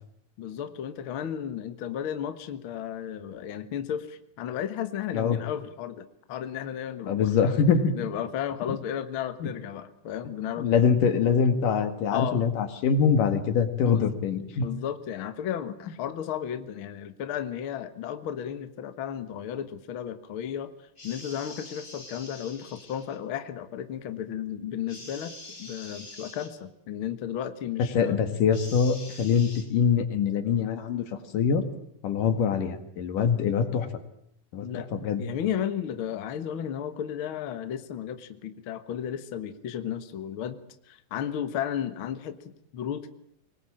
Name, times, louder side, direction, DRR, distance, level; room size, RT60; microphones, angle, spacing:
voice 1, 0.4-7.5 7.9-10.7 12.1-12.5 13.9-14.1 14.6-20.7 21.0-25.3 25.6-28.2 34.6-34.9 35.2-42.4 42.7-43.1, left 9 dB, 50° left, 9 dB, 1.8 m, -34 dB
voice 2, 7.1-7.8 9.4-9.5 10.6-14.7 27.9-31.1 31.3-31.6 32.0-33.9 34.5-35.2, left 6 dB, 85° left, 8 dB, 3.5 m, -24 dB
sound 1, 21.0-23.2 24.9-26.5 28.5-29.6, left 2 dB, 15° left, 4.7 m, -45 dB
24.0 x 20.0 x 8.8 m, 0.73 s
omnidirectional pair, 3.7 m